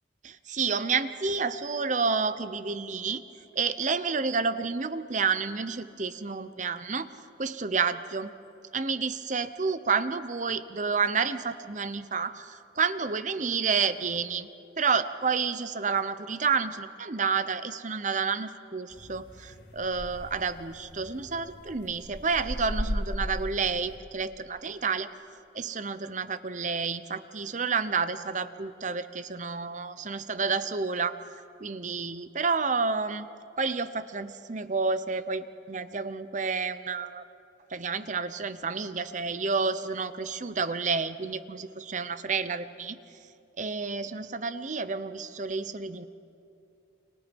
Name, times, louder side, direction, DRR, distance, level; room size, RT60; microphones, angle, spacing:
voice 1, 0.2-3.2 3.5-7.1 7.4-8.3 8.7-14.5 14.8-25.1 25.5-31.2 31.6-33.3 33.6-37.2 37.7-43.0 43.6-46.1, right 5 dB, 45° right, 12 dB, 0.9 m, -30 dB
sound 1, 18.9-24.0, equal, 65° left, 2.6 m, -37 dB
29.5 x 26.0 x 5.4 m, 2.7 s
head